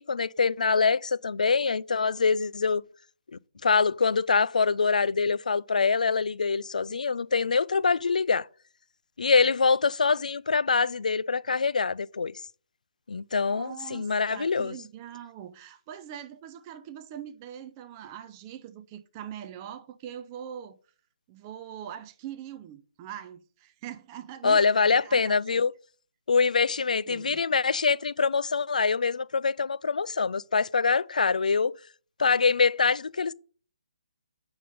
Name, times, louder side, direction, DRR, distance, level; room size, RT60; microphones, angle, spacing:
voice 1, 0.0-2.8 3.6-8.5 9.2-12.3 13.1-14.7 24.4-25.7 26.3-31.7 32.2-33.3, left 5 dB, 85° left, 0.4 m, -24 dB
voice 2, 13.5-20.8 21.3-25.6 27.1-27.4, right 10 dB, 20° right, 0.5 m, -42 dB
7.9 x 5.1 x 5.4 m
hypercardioid pair, 160°, 4 cm